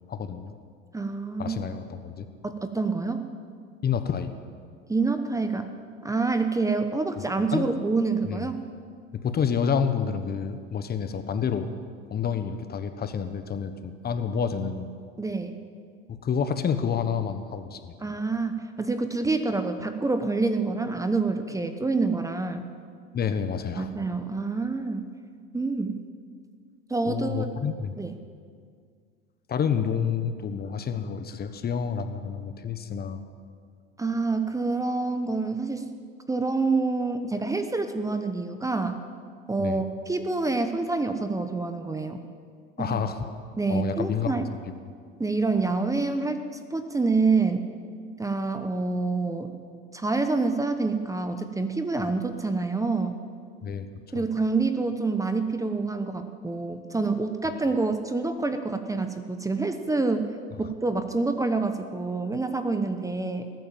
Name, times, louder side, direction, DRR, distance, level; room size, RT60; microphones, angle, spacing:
voice 1, 0.1-0.5 1.4-2.3 3.8-4.3 7.5-7.7 8.3-8.4 9.1-11.7 12.1-14.9 16.1-17.9 23.1-23.9 27.0-27.9 29.5-33.2 39.6-39.8 42.8-43.3 43.7-44.4 53.6-53.9, left 7 dB, 30° left, 9 dB, 1.2 m, -29 dB
voice 2, 0.9-1.6 2.4-3.3 4.9-5.7 6.0-8.6 15.2-15.6 18.0-22.7 23.8-25.1 25.5-26.0 26.9-27.5 28.0-28.1 34.0-35.9 36.3-39.0 39.5-42.2 42.8-43.0 43.6-44.4 45.2-46.4 46.7-47.7 48.2-49.5 49.9-53.2 54.1-60.3 60.6-63.5, right 3 dB, 10° right, 8 dB, 1.0 m, -27 dB
19.5 x 9.2 x 7.5 m, 2.1 s
supercardioid pair, 100°, 30 cm